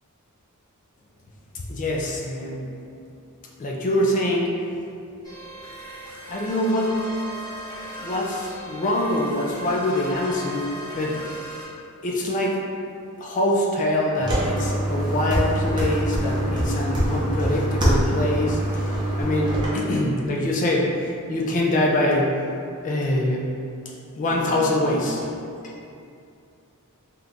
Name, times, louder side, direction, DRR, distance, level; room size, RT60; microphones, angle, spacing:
voice 1, 1.7-2.6 3.6-4.5 6.3-7.1 8.0-11.2 12.0-12.6 13.2-18.9 19.2-20.9 21.3-22.3 22.8-23.4 24.2-25.3, left 1 dB, 35° left, -1 dB, 0.3 m, -24 dB
sound 1, 5.2-11.6, right 1 dB, 20° left, 1.2 m, -38 dB
sound 2, 14.2-19.6, right 1 dB, 20° right, 0.6 m, -24 dB
2.9 x 2.5 x 3.5 m, 2.5 s
head